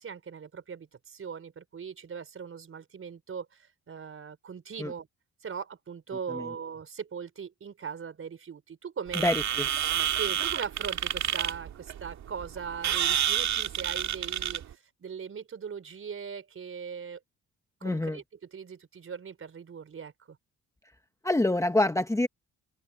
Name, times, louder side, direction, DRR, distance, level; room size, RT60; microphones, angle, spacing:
voice 1, 0.0-5.1 5.4-9.3 10.1-17.2 17.8-20.4, right 6 dB, 45° right, 4.9 m, -40 dB
voice 2, 9.1-9.7 17.8-18.2 21.2-22.3, left 1 dB, 10° left, 1.2 m, -26 dB
sound 1, 9.1-14.7, right 10 dB, 65° right, 2.1 m, -29 dB
open air
cardioid pair, 90°, 30 cm